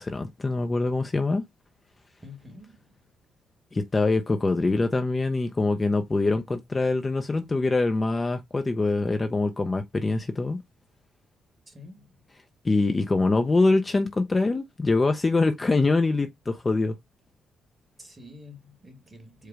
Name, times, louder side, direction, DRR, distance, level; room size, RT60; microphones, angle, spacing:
voice 1, 0.0-1.4 3.7-10.6 12.6-16.9, left 3 dB, 25° left, 0.5 m, -24 dB
voice 2, 2.2-3.1 11.7-12.2 18.0-19.5, left 2 dB, 25° right, 1.7 m, -48 dB
4.9 x 2.2 x 4.7 m
cardioid pair, 90°, 0 cm